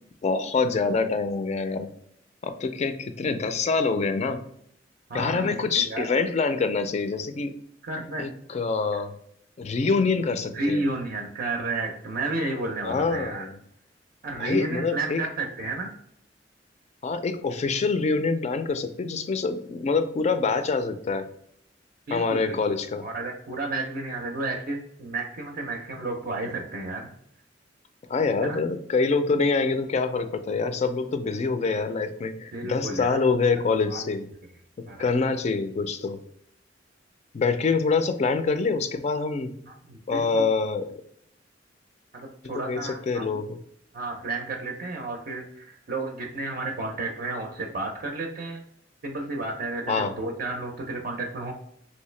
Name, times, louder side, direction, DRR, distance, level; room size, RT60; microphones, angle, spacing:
voice 1, 0.2-1.9 2.4-4.4 5.1-7.5 8.2-9.1 9.6-10.8 12.8-13.5 14.4-15.2 17.0-21.3 22.1-23.1 28.1-34.3 34.8-36.2 37.3-39.5 40.1-41.0 42.4-43.5 49.9-50.1, left 4 dB, 40° left, 9 dB, 0.3 m, -25 dB
voice 2, 5.1-6.1 7.8-8.3 10.5-13.5 14.2-15.9 22.1-22.8 23.0-27.1 28.4-28.6 32.5-33.2 33.9-34.1 34.9-35.1 37.4-37.5 39.7-40.5 42.1-43.4 43.9-48.6 49.0-51.5, right 2 dB, 50° right, 2 dB, 0.5 m, -32 dB
3.1 x 2.7 x 3.1 m, 0.70 s
head